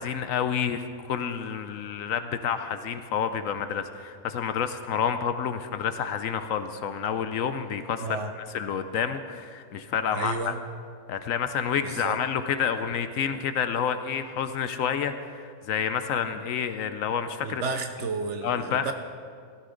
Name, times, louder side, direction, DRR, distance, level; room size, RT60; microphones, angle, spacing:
voice 1, 0.0-8.1 8.5-10.5 11.1-17.6 18.4-18.9, left 7 dB, 70° left, 10 dB, 0.9 m, -29 dB
voice 2, 8.0-8.3 10.1-10.6 11.8-12.2 16.3-16.4 17.4-18.9, right 4 dB, 60° right, 7 dB, 0.9 m, -32 dB
16.0 x 13.0 x 3.8 m, 2.2 s
omnidirectional pair, 1.6 m